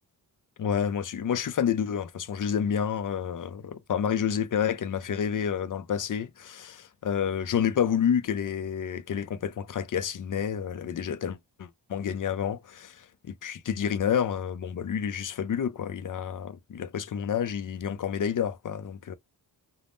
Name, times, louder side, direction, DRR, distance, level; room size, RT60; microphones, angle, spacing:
voice 1, 0.6-19.2, left 8 dB, 50° left, 0.6 m, -29 dB
3.5 x 2.2 x 2.5 m
cardioid pair, 70°, 41 cm